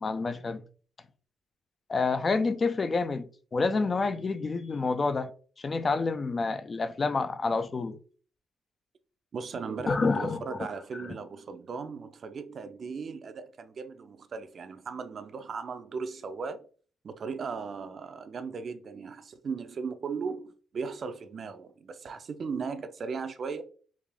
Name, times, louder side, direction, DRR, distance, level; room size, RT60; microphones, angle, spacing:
voice 1, 0.0-0.6 1.9-5.3 5.6-8.0 9.9-10.7 11.0-11.2, left 4 dB, 35° left, 0.3 m, -28 dB
voice 2, 9.3-16.7 17.0-23.6, right 5 dB, 50° right, 0.4 m, -37 dB
3.4 x 2.4 x 3.5 m
cardioid pair, 90°, 0 cm